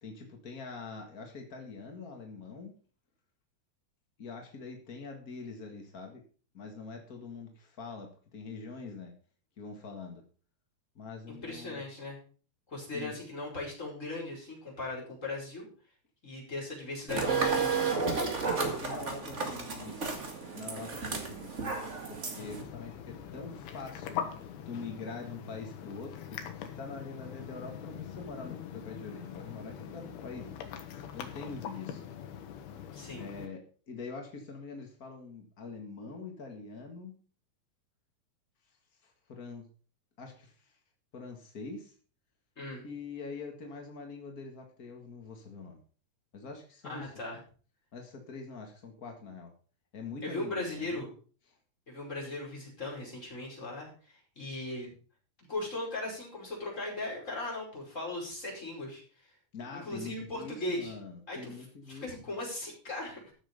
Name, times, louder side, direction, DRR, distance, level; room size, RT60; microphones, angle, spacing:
voice 1, 0.0-2.7 4.2-6.2 6.5-9.1 9.6-10.2 10.9-11.8 12.9-13.1 18.3-20.2 20.5-21.6 22.1-30.6 31.1-32.0 33.1-37.2 38.7-38.8 39.0-39.7 40.2-40.8 41.1-41.9 42.8-45.8 46.3-47.4 47.9-49.5 49.9-51.0 51.5-51.6 59.5-62.4, left 4 dB, 60° left, 3 dB, 0.9 m, -44 dB
voice 2, 11.4-12.2 12.7-15.7 16.2-18.0 32.9-33.3 42.6-42.8 46.9-47.4 50.2-51.1 51.9-54.9 55.5-59.0 59.7-60.9 61.3-61.5 61.9-63.3, left 2 dB, 15° left, -3 dB, 5.2 m, -38 dB
sound 1, 17.1-22.6, right 4 dB, 45° right, 0.9 m, -32 dB
sound 2, 22.4-33.5, left 9 dB, 80° left, 3.4 m, -42 dB
14.0 x 7.4 x 5.3 m, 0.41 s
omnidirectional pair, 4.7 m